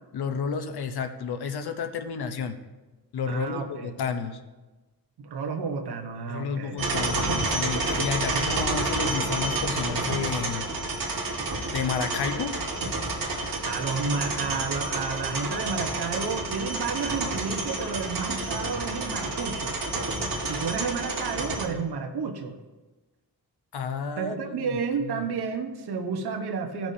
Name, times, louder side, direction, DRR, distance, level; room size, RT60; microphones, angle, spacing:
voice 1, 0.1-2.6 3.1-4.4 6.3-10.7 11.7-12.5 23.7-25.3, left 6 dB, 80° left, 8 dB, 0.9 m, -31 dB
voice 2, 3.3-3.9 5.2-7.0 8.3-8.6 13.6-19.8 20.4-22.6 24.2-26.9, right 5 dB, 85° right, 4 dB, 1.1 m, -31 dB
sound 1, 6.8-21.7, right 2 dB, 60° right, 1.7 m, -29 dB
16.5 x 5.9 x 2.8 m, 1.2 s
wide cardioid pair, 120°, 38 cm